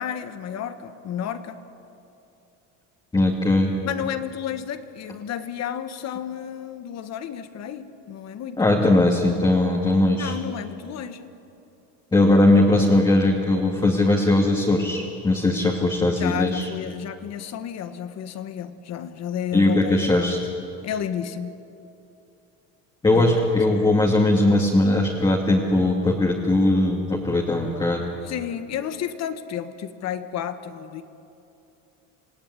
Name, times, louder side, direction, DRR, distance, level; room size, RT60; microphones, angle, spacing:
voice 1, 0.0-1.6 3.8-8.6 10.2-11.3 16.1-20.4 20.8-21.5 23.1-23.4 23.7-23.8 28.2-31.0, left 9 dB, 50° left, 10 dB, 1.6 m, -32 dB
voice 2, 3.1-3.8 8.6-10.3 12.1-16.7 19.5-20.4 23.0-28.0, left 2 dB, 10° left, -1 dB, 2.4 m, -19 dB
27.5 x 18.0 x 9.7 m, 2.7 s
cardioid pair, 140°, 35 cm